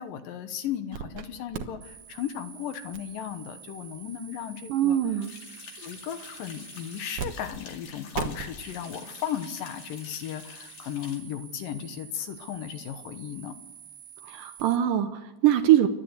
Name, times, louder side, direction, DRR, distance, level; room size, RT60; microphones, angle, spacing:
voice 1, 0.0-5.0 5.8-13.5, left 10 dB, 70° left, 9 dB, 2.2 m, -35 dB
sound 1, 0.9-1.3 1.5-7.3 7.5-7.6 8.1-14.8, right 8 dB, 65° right, 2.0 m, -43 dB
voice 2, 4.7-5.3 14.2-15.9, right 12 dB, 90° right, 9 dB, 1.9 m, -22 dB
sound 2, 5.2-11.2, left 5 dB, 45° left, 3.2 m, -47 dB
29.0 x 12.5 x 8.1 m, 1.1 s
omnidirectional pair, 5.0 m